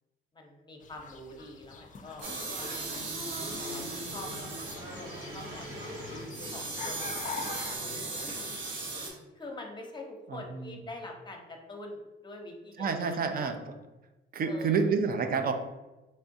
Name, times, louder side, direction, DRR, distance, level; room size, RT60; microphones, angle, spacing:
voice 1, 0.3-4.3 5.0-5.9 6.5-8.4 9.3-13.5 14.5-14.9, left 2 dB, 20° left, 2 dB, 0.7 m, -45 dB
sound 1, 0.8-7.8, left 5 dB, 40° left, 0.4 m, -45 dB
sound 2, 2.2-9.1, right 2 dB, 85° right, 1.0 m, -37 dB
voice 2, 10.3-10.8 12.8-13.7 14.3-15.5, right 5 dB, 50° right, 6 dB, 0.5 m, -29 dB
3.5 x 3.2 x 2.7 m, 1.1 s
cardioid pair, 90°, 20 cm